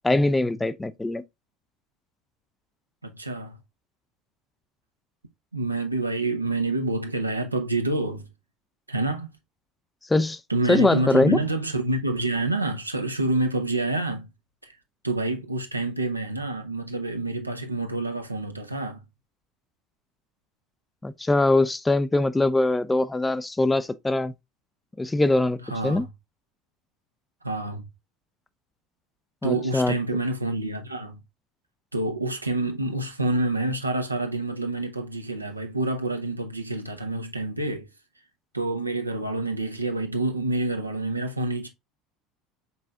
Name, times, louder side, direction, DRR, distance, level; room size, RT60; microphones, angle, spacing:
voice 1, 0.0-1.2 10.1-10.4 10.7-11.4 21.0-24.3 25.0-26.1 29.4-29.9, left 2 dB, 10° left, 0.4 m, -22 dB
voice 2, 3.0-3.6 5.5-8.3 8.9-9.3 10.5-14.3 14.6-14.7 15.0-19.0 25.7-26.1 27.4-27.8 29.4-31.2 31.9-37.9 38.5-41.7, right 2 dB, 90° right, 0.7 m, -27 dB
5.4 x 4.2 x 2.3 m
figure-of-eight pair, 70°, 0 cm